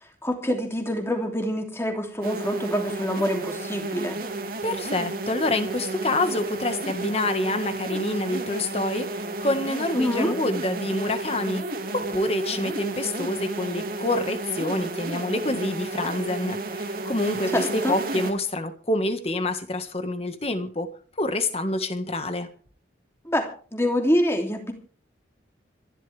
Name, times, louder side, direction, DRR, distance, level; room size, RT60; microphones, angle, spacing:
voice 1, 0.2-4.2 9.9-10.3 17.5-18.0 23.2-24.7, equal, 15° left, 3 dB, 2.9 m, -26 dB
sound 1, 2.2-18.3, right 2 dB, 50° right, 2.5 m, -32 dB
voice 2, 4.6-20.9 21.2-22.5, left 1 dB, 30° left, 8 dB, 1.6 m, -27 dB
25.5 x 12.0 x 3.5 m, 0.41 s
head